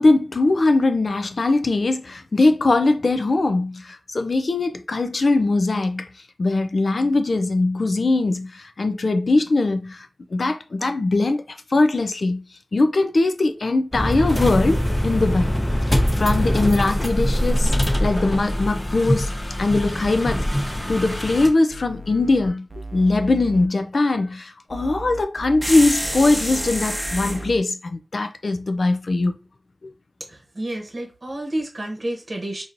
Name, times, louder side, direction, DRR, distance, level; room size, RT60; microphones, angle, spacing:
voice 1, 0.0-6.1 6.4-11.4 11.7-12.4 12.7-15.6 15.9-19.3 19.6-20.5 20.9-22.7 22.9-29.3 29.8-29.9, left 2 dB, 70° left, 0.4 m, -21 dB
sound 1, 13.9-21.5, equal, 25° left, 1.0 m, -23 dB
sound 2, 20.7-21.4 21.7-23.7 24.7-26.8 27.0-27.6, right 2 dB, 35° right, 0.5 m, -37 dB
sound 3, 25.6-27.5, equal, 5° right, 0.9 m, -27 dB
voice 2, 30.5-32.6, right 1 dB, 50° right, 0.9 m, -29 dB
4.4 x 2.7 x 2.6 m
cardioid pair, 45°, 0 cm